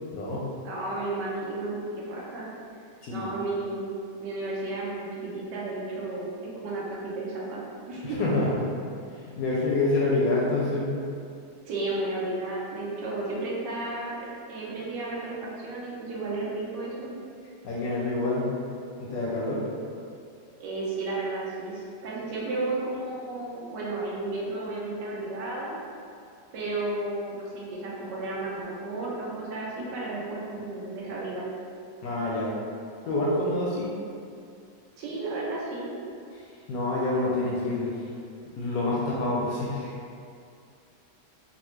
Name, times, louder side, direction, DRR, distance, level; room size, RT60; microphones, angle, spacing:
voice 1, 0.1-0.4 3.0-3.3 8.0-8.5 9.1-10.9 17.6-18.5 19.0-19.6 32.0-32.5 33.0-33.9 36.4-38.1 38.6-40.0, left 2 dB, 70° left, -5 dB, 0.9 m, -27 dB
voice 2, 0.6-2.5 3.1-3.9 4.2-6.3 6.6-7.6 7.9-8.3 11.6-17.1 20.6-25.8 26.5-31.5 35.0-35.9, right 2 dB, 85° right, -5 dB, 1.3 m, -33 dB
4.0 x 2.0 x 3.0 m, 2.4 s
omnidirectional pair, 1.9 m